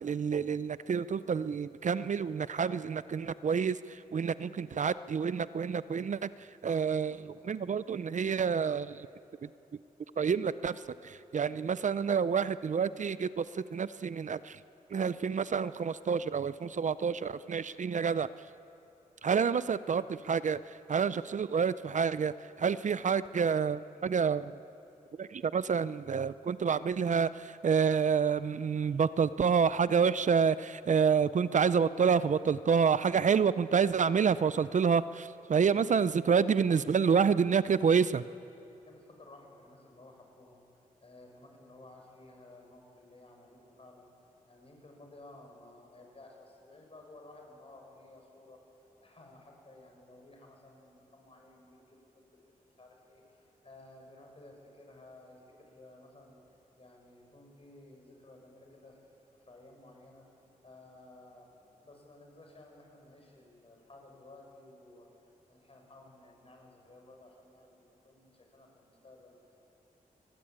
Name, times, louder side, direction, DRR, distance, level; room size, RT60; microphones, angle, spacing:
voice 1, 0.0-6.3 6.6-9.1 9.4-9.5 10.2-14.6 14.9-18.3 19.2-20.6 20.9-24.5 25.2-38.2, right 6 dB, 55° right, 16 dB, 0.6 m, -28 dB
voice 2, 36.3-37.0 38.8-44.1 44.5-56.4 56.8-60.2 60.6-69.6, left 2 dB, 40° left, 1 dB, 6.6 m, -55 dB
25.0 x 20.0 x 8.8 m, 2.8 s
cardioid pair, 75°, 15 cm